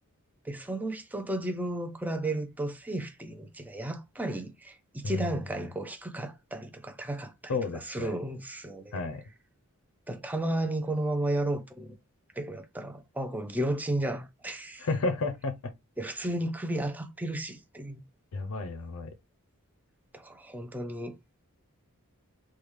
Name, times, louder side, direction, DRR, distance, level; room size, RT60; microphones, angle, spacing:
voice 1, 0.4-9.0 10.1-12.0 12.4-14.9 16.0-18.0 20.1-21.1, right 1 dB, 10° right, 0.4 m, -33 dB
voice 2, 5.0-5.7 7.5-8.2 8.9-9.2 14.8-15.6 18.3-19.1, left 3 dB, 70° left, 0.5 m, -32 dB
3.4 x 2.2 x 3.0 m
head